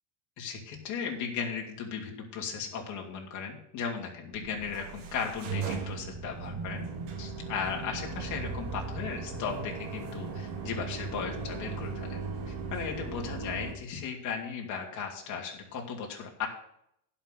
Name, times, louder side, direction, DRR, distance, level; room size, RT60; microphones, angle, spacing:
voice 1, 0.4-6.8 7.2-12.2 12.5-16.5, left 6 dB, 40° left, 0 dB, 2.8 m, -36 dB
sound 1, 4.3-13.7, right 4 dB, 60° right, 2.0 m, -37 dB
11.0 x 5.9 x 6.5 m, 0.74 s
supercardioid pair, 135°, 45 cm